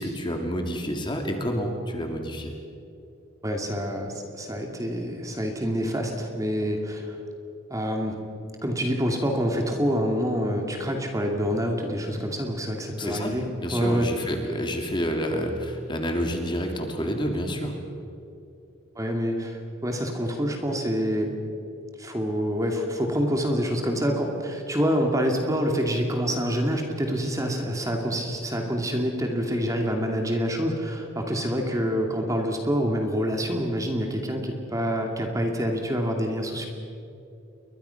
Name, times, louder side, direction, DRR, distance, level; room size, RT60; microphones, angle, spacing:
voice 1, 0.0-2.5 13.0-17.7, equal, 20° left, 3 dB, 2.6 m, -29 dB
voice 2, 3.4-7.2 7.7-8.2 8.6-13.4 13.7-14.1 19.0-21.3 22.0-36.7, equal, 15° right, 2 dB, 2.5 m, -26 dB
29.5 x 23.0 x 5.9 m, 2.8 s
head